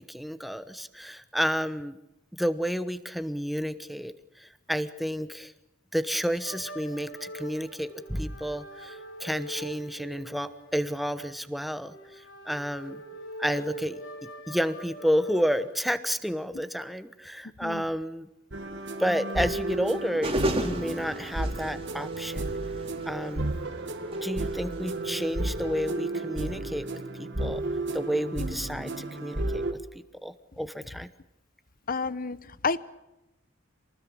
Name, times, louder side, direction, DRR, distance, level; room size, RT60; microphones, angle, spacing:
voice 1, 0.0-2.0 2.3-5.5 5.9-13.0 13.4-14.0 14.5-18.3 19.0-22.6 23.0-23.5 24.2-27.6 27.9-31.1, equal, ahead, 1.1 m, -31 dB
sound 1, 6.4-15.9, equal, 70° left, 4.6 m, -43 dB
sound 2, 18.5-29.7, right 2 dB, 65° right, 2.1 m, -33 dB
sound 3, 20.2-25.8, right 1 dB, 30° right, 2.9 m, -35 dB
voice 2, 31.9-32.8, left 4 dB, 45° left, 0.9 m, -30 dB
27.5 x 19.5 x 8.6 m
head